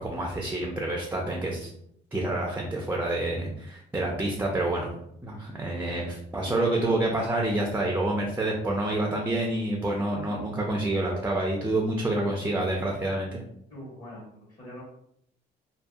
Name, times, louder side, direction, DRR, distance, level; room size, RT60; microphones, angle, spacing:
voice 1, 0.0-1.7 2.1-4.9 5.2-13.4, right 1 dB, 10° right, -1 dB, 0.5 m, -28 dB
voice 2, 13.7-14.8, equal, 45° left, -5 dB, 1.3 m, -43 dB
2.7 x 2.3 x 2.3 m, 0.73 s
cardioid pair, 90°, 20 cm